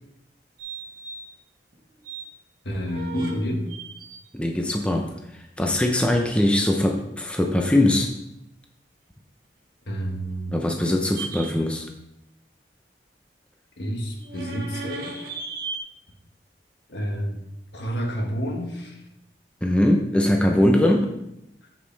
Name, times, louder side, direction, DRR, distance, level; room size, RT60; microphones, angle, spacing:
sound 1, 0.6-1.3 1.7-2.2 2.7-3.3 3.7-4.3 11.1-11.5 14.2-15.8, right 4 dB, 55° right, 1.5 m, -36 dB
voice 1, 2.6-3.7 9.9-10.6 13.8-15.2 16.9-17.4 17.7-19.0 20.5-20.8 21.6-21.7, equal, 70° left, 2 dB, 1.5 m, -29 dB
voice 2, 4.3-5.1 5.6-8.1 10.5-11.9 19.6-21.1, left 1 dB, 5° left, 2 dB, 0.7 m, -21 dB
8.3 x 7.5 x 3.4 m, 0.83 s
head